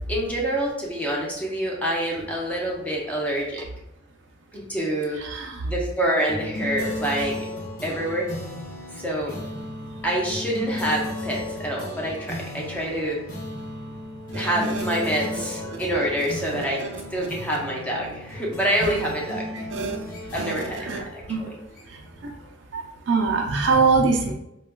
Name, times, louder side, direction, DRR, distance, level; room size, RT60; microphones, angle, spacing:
voice 1, 0.1-3.6 4.5-5.2 5.6-7.5 7.8-8.3 8.9-9.4 10.0-13.2 14.3-16.8 17.1-19.5 20.3-20.8 21.1-21.5, right 1 dB, 10° left, -3 dB, 0.7 m, -26 dB
voice 2, 5.2-5.6 14.3-14.8 15.1-16.1 16.5-16.9 18.8-18.9 19.5-20.0 20.3-21.4 21.9-22.3 22.7-24.3, right 4 dB, 90° right, 1 dB, 0.5 m, -25 dB
sound 1, 6.3-22.2, left 1 dB, 50° left, 0.9 m, -35 dB
4.0 x 2.3 x 2.2 m, 0.82 s
head